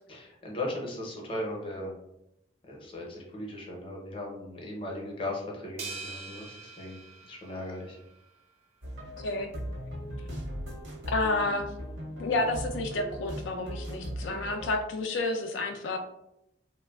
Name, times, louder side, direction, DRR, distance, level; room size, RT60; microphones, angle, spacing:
voice 1, 0.1-1.9 2.7-7.0 7.3-8.0, left 1 dB, 30° left, -1 dB, 0.6 m, -37 dB
sound 1, 5.8-8.3, right 4 dB, 35° right, 0.4 m, -43 dB
sound 2, 8.8-14.7, equal, 80° right, 0.7 m, -38 dB
voice 2, 11.1-11.7 12.2-16.0, left 2 dB, 90° left, 5 dB, 0.4 m, -30 dB
3.1 x 2.1 x 2.2 m, 0.82 s
head